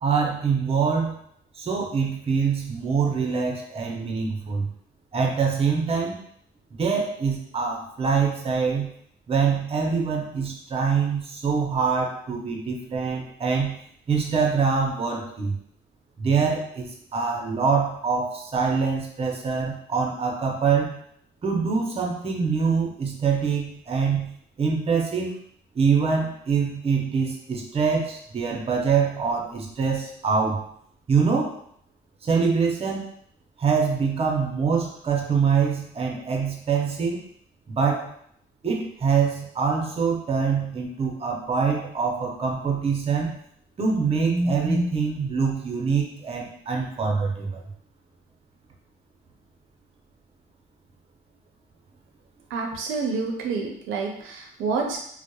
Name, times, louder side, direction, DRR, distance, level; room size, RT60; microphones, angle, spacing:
voice 1, 0.0-1.2 1.6-4.7 5.1-6.2 6.8-8.9 9.3-13.8 14.1-15.6 16.2-21.0 21.4-25.4 25.7-30.7 31.1-31.6 32.2-33.1 33.6-37.2 37.7-38.1 38.6-43.4 43.8-47.6, right 5 dB, 30° right, 0 dB, 0.5 m, -24 dB
voice 2, 52.5-55.0, right 4 dB, 90° right, 1 dB, 0.5 m, -28 dB
2.8 x 2.0 x 2.2 m, 0.68 s
cardioid pair, 90°, 20 cm